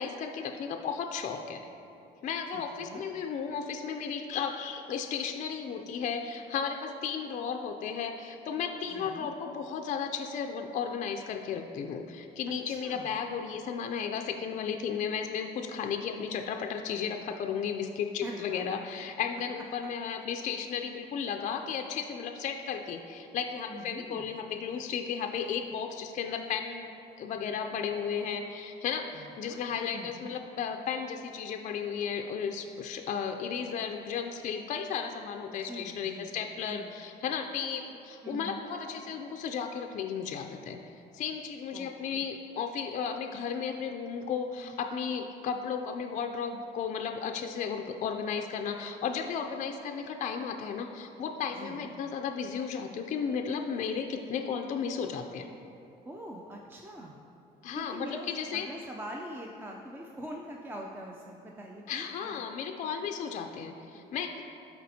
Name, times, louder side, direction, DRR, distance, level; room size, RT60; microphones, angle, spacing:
voice 1, 0.0-1.6 2.2-26.9 27.2-40.8 41.1-55.5 57.6-58.7 61.9-64.4, left 6 dB, 45° left, 5 dB, 0.4 m, -34 dB
voice 2, 2.5-3.1 8.9-9.3 12.7-13.1 18.2-18.8 19.5-19.6 23.7-24.3 29.1-29.6 29.9-30.3 35.5-36.3 36.6-36.9 38.2-38.6 41.7-42.3 51.5-51.9 56.0-57.2 57.7-62.4, right 1 dB, 10° right, 0 dB, 0.4 m, -44 dB
11.5 x 4.3 x 2.7 m, 2.7 s
cardioid pair, 110°, 17 cm